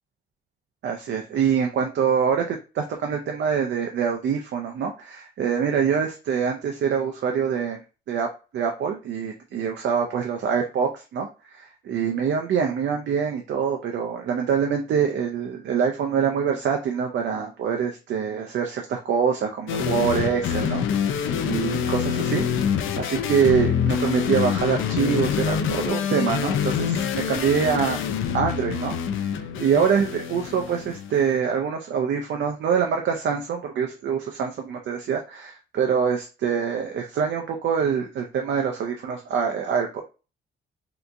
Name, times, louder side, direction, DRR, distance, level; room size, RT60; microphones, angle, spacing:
voice 1, 0.8-7.8 8.1-28.0 28.3-29.0 29.6-40.0, right 7 dB, 65° right, 2 dB, 0.5 m, -25 dB
sound 1, 19.7-31.2, left 7 dB, 80° left, 0.5 m, -26 dB
3.4 x 2.8 x 2.5 m, 0.32 s
cardioid pair, 155°, 20 cm